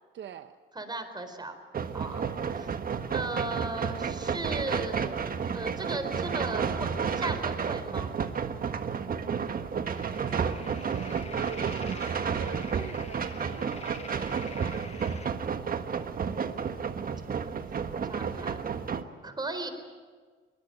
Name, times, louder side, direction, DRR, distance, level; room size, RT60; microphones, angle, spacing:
voice 1, 0.1-0.6 2.1-2.4 10.3-15.2, right 9 dB, 65° right, 10 dB, 0.9 m, -44 dB
voice 2, 0.7-1.5 1.9-2.3 2.6-2.7 3.1-8.1 17.9-18.6 19.2-19.7, right 2 dB, 20° right, 8 dB, 4.1 m, -37 dB
sound 1, 1.7-19.0, right 6 dB, 45° right, 1.4 m, -31 dB
sound 2, 10.0-15.3, left 5 dB, 35° left, 1.3 m, -47 dB
22.5 x 20.0 x 9.2 m, 1.5 s
cardioid pair, 90°, 20 cm